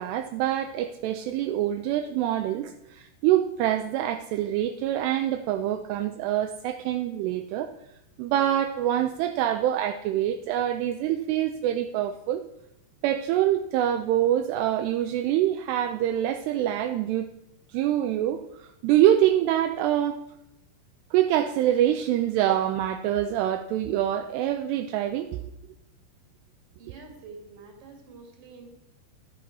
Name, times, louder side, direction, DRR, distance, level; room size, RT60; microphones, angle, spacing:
voice 1, 0.0-7.7 8.2-12.5 13.0-17.3 17.7-20.2 21.1-25.4, right 12 dB, 85° right, 7 dB, 2.4 m, -25 dB
voice 2, 26.8-28.7, right 4 dB, 40° right, 1 dB, 2.7 m, -47 dB
13.5 x 10.5 x 4.7 m, 0.86 s
omnidirectional pair, 5.3 m